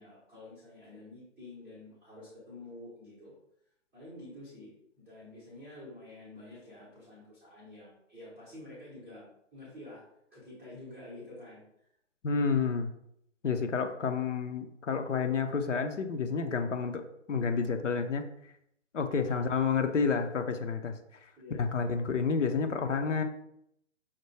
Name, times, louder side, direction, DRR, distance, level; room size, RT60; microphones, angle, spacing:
voice 1, 0.0-3.4 3.9-9.2 9.5-10.0 10.3-11.6 19.2-19.7 21.4-21.6, left 2 dB, 5° right, -11 dB, 0.6 m, -49 dB
voice 2, 12.2-12.9 13.4-17.0 17.3-18.2 18.9-21.0 21.6-23.2, left 5 dB, 75° left, 6 dB, 0.7 m, -29 dB
5.7 x 2.1 x 3.2 m, 0.74 s
figure-of-eight pair, 145°, 37 cm